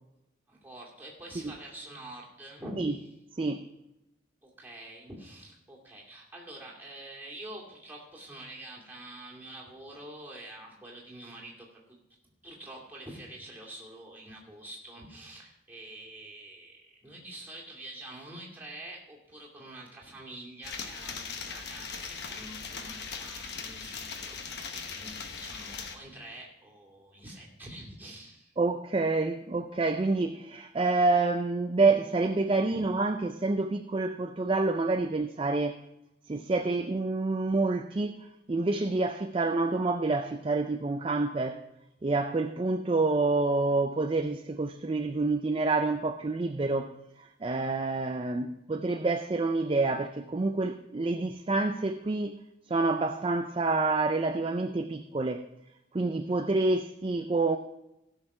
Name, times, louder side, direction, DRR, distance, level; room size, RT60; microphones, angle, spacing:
voice 1, 0.5-3.1 4.4-12.0 12.4-28.5 32.7-32.9 48.4-48.5, right 1 dB, 10° right, 2.4 m, -46 dB
sound 1, 20.6-26.0, left 5 dB, 55° left, 1.1 m, -39 dB
voice 2, 28.6-35.8 36.3-41.6 42.0-46.9 47.2-52.4 52.7-55.5 55.9-57.6, right 3 dB, 25° right, 0.4 m, -28 dB
16.0 x 6.5 x 4.8 m
head